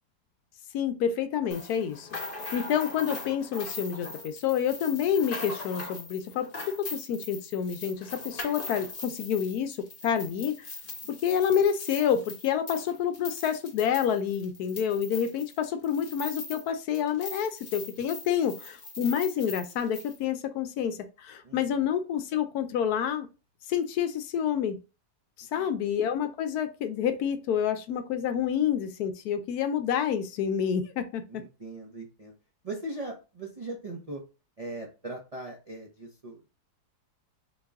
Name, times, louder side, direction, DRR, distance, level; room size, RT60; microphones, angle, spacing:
voice 1, 0.7-2.1 2.5-9.8 10.0-10.5 11.2-23.3 23.7-24.8 25.4-31.2, left 8 dB, 75° left, 1.0 m, -28 dB
sound 1, 1.5-16.7 16.9-20.2, left 3 dB, 40° left, 0.9 m, -41 dB
voice 2, 21.4-21.8 25.6-25.9 31.3-32.3 32.6-34.2 34.6-36.5, right 2 dB, 50° right, 0.4 m, -40 dB
3.9 x 2.9 x 3.5 m
omnidirectional pair, 1.8 m